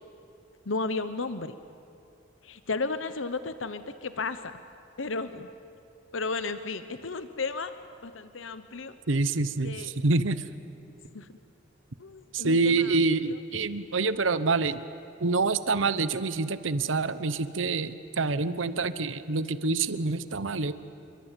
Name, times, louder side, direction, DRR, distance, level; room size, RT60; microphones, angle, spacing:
voice 1, 0.7-1.5 2.4-4.6 5.0-5.5 6.1-7.7 8.0-8.9 9.6-9.9 11.1-11.3 12.0-13.0, left 3 dB, 85° left, 11 dB, 1.0 m, -33 dB
voice 2, 9.1-10.4 12.3-14.8 15.2-20.7, right 3 dB, 85° right, 13 dB, 1.0 m, -26 dB
28.0 x 23.5 x 9.1 m, 2.7 s
head